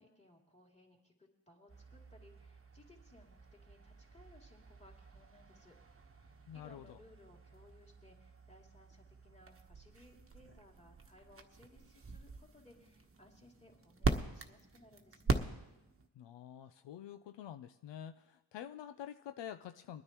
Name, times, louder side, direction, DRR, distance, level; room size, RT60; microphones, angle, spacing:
voice 1, 0.0-5.8 6.0-15.5, left 1 dB, 15° left, -1 dB, 3.0 m, -63 dB
sound 1, 1.7-16.1, right 3 dB, 30° right, 1.2 m, -42 dB
voice 2, 6.5-7.0 16.2-20.0, left 10 dB, 75° left, 9 dB, 0.6 m, -48 dB
22.5 x 9.7 x 3.0 m, 0.99 s
supercardioid pair, 50°, 44 cm